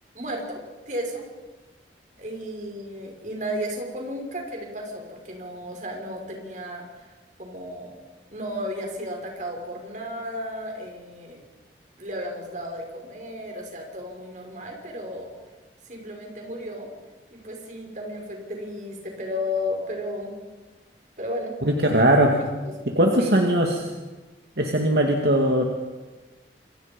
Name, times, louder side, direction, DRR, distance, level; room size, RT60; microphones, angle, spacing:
voice 1, 0.1-0.6 0.9-1.3 2.2-6.8 7.4-8.0 8.3-11.4 12.0-15.3 15.9-16.9 17.3-20.3 21.2-21.6 22.6-22.7 23.2-23.5, left 1 dB, 45° right, 1 dB, 5.7 m, -33 dB
voice 2, 21.6-22.4 23.0-23.8 24.6-25.6, right 1 dB, 65° right, 1 dB, 2.4 m, -20 dB
28.0 x 23.5 x 5.4 m, 1.2 s
head